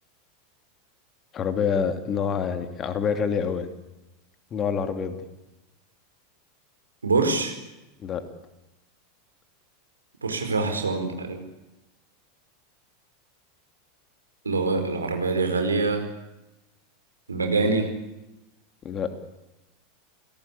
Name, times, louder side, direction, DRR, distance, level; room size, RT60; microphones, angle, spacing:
voice 1, 1.3-3.7 4.5-5.2 8.0-8.2 18.8-19.1, left 6 dB, 30° left, 8 dB, 2.8 m, -27 dB
voice 2, 7.0-7.5 10.2-11.5 14.4-16.1 17.3-17.9, right 3 dB, 80° right, 5 dB, 4.6 m, -24 dB
28.5 x 18.0 x 8.5 m, 1.0 s
figure-of-eight pair, 85°, 0 cm